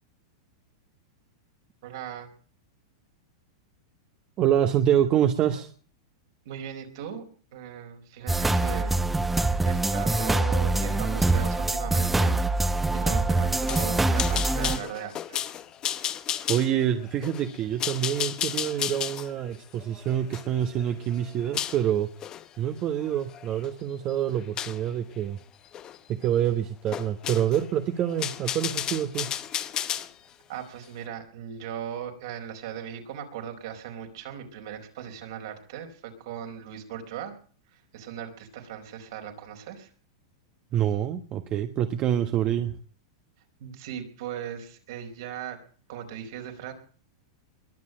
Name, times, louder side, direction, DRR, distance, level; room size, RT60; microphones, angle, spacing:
voice 1, 1.8-2.3 6.4-7.2 7.5-9.0 9.4-15.6 30.5-37.3 37.7-39.9 43.6-45.6 45.9-46.7, right 9 dB, 70° right, 4 dB, 4.8 m, -38 dB
voice 2, 4.4-5.7 16.5-22.1 22.6-25.4 26.1-29.3 40.7-42.7, right 10 dB, 35° right, 7 dB, 1.4 m, -26 dB
sound 1, 8.3-14.8, right 2 dB, 5° right, 1.1 m, -24 dB
sound 2, 13.7-21.8 22.2-22.5 23.0-23.7 24.6-24.8 25.7-26.0 26.2-26.3 26.9-27.7 28.0-30.1, left 10 dB, 30° left, 1.1 m, -33 dB
22.0 x 7.5 x 8.8 m, 0.43 s
hypercardioid pair, 125°, 2 cm